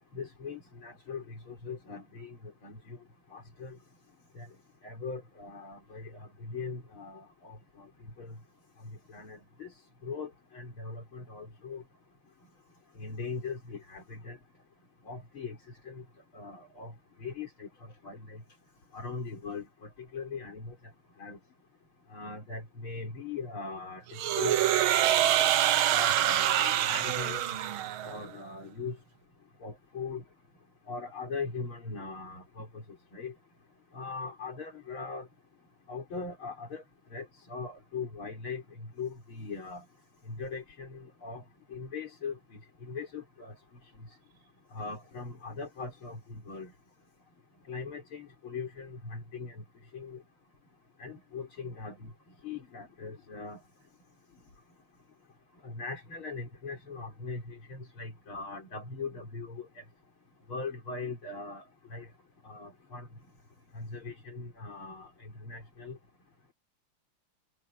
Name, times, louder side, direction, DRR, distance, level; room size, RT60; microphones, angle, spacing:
voice 1, 0.1-2.4 2.6-3.0 3.3-3.8 4.4-4.5 4.8-6.0 6.4-7.6 8.2-8.3 9.1-9.7 10.0-11.8 13.0-14.4 15.1-15.6 15.9-16.0 16.3-16.9 17.2-17.7 18.0-18.4 18.9-19.7 20.1-20.7 21.2-21.4 22.1-24.0 24.4-24.5 25.9-27.4 28.0-29.0 29.6-30.2 30.9-32.7 33.1-33.3 33.9-35.3 35.9-36.8 37.1-38.6 39.0-39.8 40.4-41.4 41.7-42.4 42.9-43.5 44.7-46.7 47.7-49.5 49.9-50.2 51.0-52.1 52.4-53.6 55.6-59.6 60.5-61.6 61.9-62.1 62.5-63.1 63.8-65.1 65.5-66.0, left 4 dB, 70° left, 5.5 m, -40 dB
sound 1, 24.2-28.2, right 12 dB, 75° right, 1.7 m, -26 dB
omnidirectional pair, 2.4 m